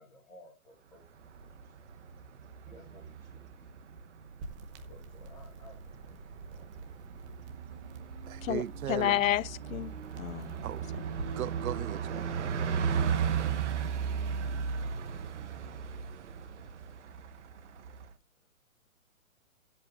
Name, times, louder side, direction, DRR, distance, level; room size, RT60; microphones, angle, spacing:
voice 1, 0.0-1.7 2.6-4.1 4.9-7.0, left 1 dB, 10° left, 2.3 m, -58 dB
Bus, 1.1-18.1, right 7 dB, 55° right, 1.2 m, -36 dB
sound 1, 4.4-11.4, right 2 dB, 20° right, 1.1 m, -49 dB
voice 2, 8.3-9.2 10.6-10.9 11.4-13.5, right 11 dB, 75° right, 0.5 m, -39 dB
voice 3, 8.9-10.6, left 12 dB, 70° left, 0.5 m, -30 dB
16.5 x 8.0 x 2.7 m
hypercardioid pair, 155°, 42 cm